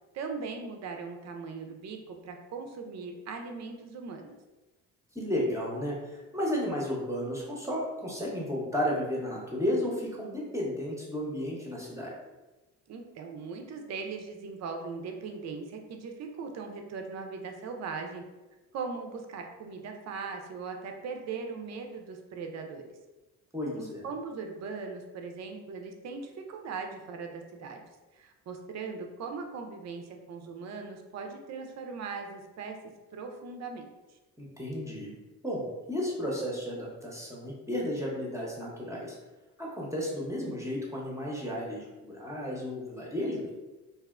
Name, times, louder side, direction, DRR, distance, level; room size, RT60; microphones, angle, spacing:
voice 1, 0.1-4.3 12.9-18.2 18.7-22.8 23.7-27.8 28.1-32.8 33.1-33.8, right 4 dB, 40° right, 4 dB, 0.5 m, -39 dB
voice 2, 5.1-12.1 23.5-24.1 34.4-35.1 35.4-39.2 39.6-43.5, left 1 dB, 5° right, -4 dB, 0.7 m, -33 dB
2.6 x 2.0 x 2.4 m, 1.1 s
hypercardioid pair, 55°, 40 cm